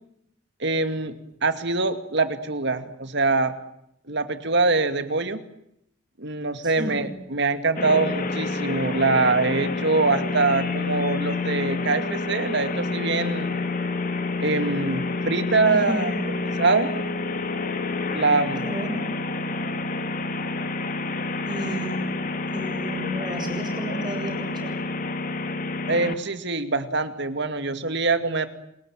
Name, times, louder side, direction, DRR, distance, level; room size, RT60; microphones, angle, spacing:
voice 1, 0.6-1.1 1.4-3.5 4.1-5.4 6.2-13.6 14.4-16.1 16.6-16.9 18.1-18.6 25.9-28.5, right 3 dB, 60° right, 9 dB, 2.5 m, -24 dB
voice 2, 6.6-7.1 15.6-16.2 18.6-19.1 21.4-22.1 22.5-24.8, equal, 20° right, 4 dB, 7.8 m, -32 dB
sound 1, 7.8-26.1, left 3 dB, 45° left, 2.3 m, -28 dB
28.5 x 20.5 x 9.2 m, 0.77 s
head